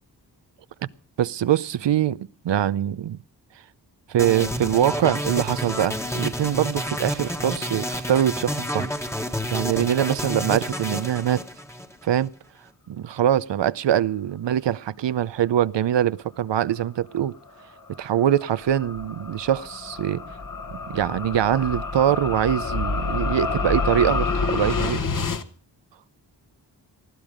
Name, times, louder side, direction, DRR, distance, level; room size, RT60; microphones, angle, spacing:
voice 1, 1.2-3.2 4.1-8.9 9.5-11.4 12.0-12.3 12.9-17.3 18.0-20.2 20.9-25.0, right 10 dB, 85° right, 0.7 m, -23 dB
sound 1, 4.2-12.3, equal, 5° left, 1.3 m, -30 dB
sound 2, 17.6-25.4, left 4 dB, 50° left, 1.3 m, -28 dB
19.5 x 13.0 x 5.1 m
wide cardioid pair, 130°, 42 cm